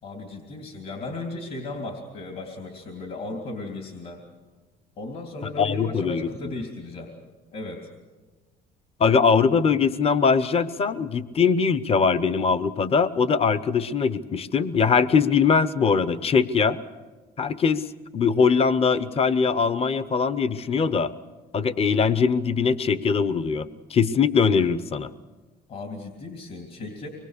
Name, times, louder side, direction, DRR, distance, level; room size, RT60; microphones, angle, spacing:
voice 1, 0.0-4.2 5.0-7.1 7.5-7.9 25.7-27.1, left 2 dB, 60° left, 2 dB, 3.2 m, -36 dB
voice 2, 5.6-6.3 9.0-16.8 17.4-17.8 18.1-21.1 21.5-25.1, left 5 dB, 35° left, 15 dB, 0.8 m, -21 dB
25.0 x 21.5 x 6.7 m, 1.3 s
cardioid pair, 110°, 17 cm